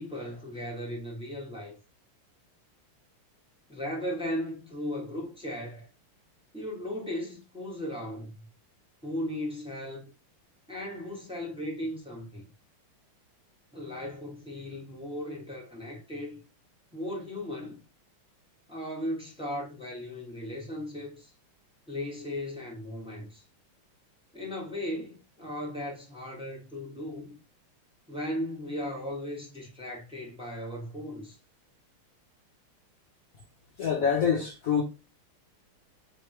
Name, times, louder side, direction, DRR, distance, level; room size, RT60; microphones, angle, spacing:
voice 1, 0.0-1.7 3.7-5.9 6.5-8.3 9.0-10.1 10.7-12.5 13.7-16.4 16.9-17.8 18.7-21.3 21.9-23.4 24.3-27.4 28.1-31.4, left 1 dB, 5° right, 0.6 m, -36 dB
voice 2, 33.8-34.8, left 7 dB, 85° left, 0.7 m, -25 dB
3.4 x 3.0 x 4.5 m
omnidirectional pair, 2.4 m